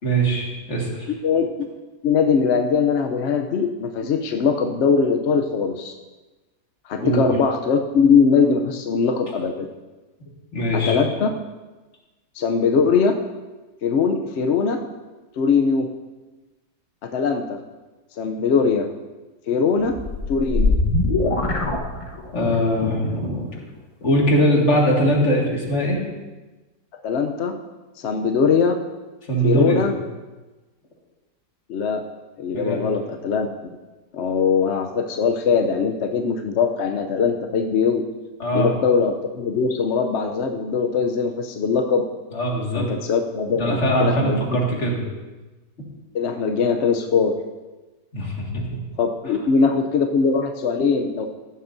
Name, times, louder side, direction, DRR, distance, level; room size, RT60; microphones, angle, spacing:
voice 1, 0.0-1.1 7.0-7.3 10.5-11.0 22.3-23.6 24.0-26.0 29.3-29.9 32.5-32.8 38.4-38.7 42.3-42.9 43.6-45.0 48.1-48.8, equal, 45° left, -2 dB, 2.2 m, -21 dB
voice 2, 1.2-1.7 2.0-5.9 6.9-9.7 10.7-11.3 12.3-13.2 13.8-14.8 15.4-15.9 17.0-17.6 18.2-18.9 19.5-19.9 20.3-20.8 27.0-27.5 28.0-28.8 29.4-29.9 31.7-32.0 32.4-33.5 34.1-38.0 38.5-42.0 42.7-44.4 46.1-47.3 49.0-51.3, left 5 dB, 60° left, 5 dB, 0.7 m, -21 dB
sound 1, 19.8-22.5, left 2 dB, 25° left, 1.0 m, -22 dB
15.0 x 11.5 x 2.6 m, 1.2 s
omnidirectional pair, 1.8 m